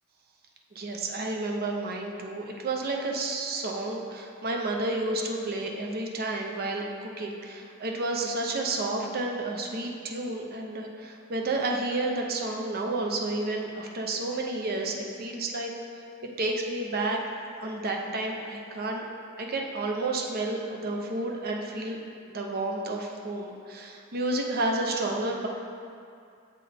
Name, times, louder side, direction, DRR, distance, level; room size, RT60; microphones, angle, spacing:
voice 1, 0.7-15.7 16.4-17.2 17.6-19.0 19.4-22.0 22.3-25.5, right 2 dB, 50° right, 1 dB, 0.6 m, -31 dB
7.4 x 3.8 x 3.4 m, 2.4 s
head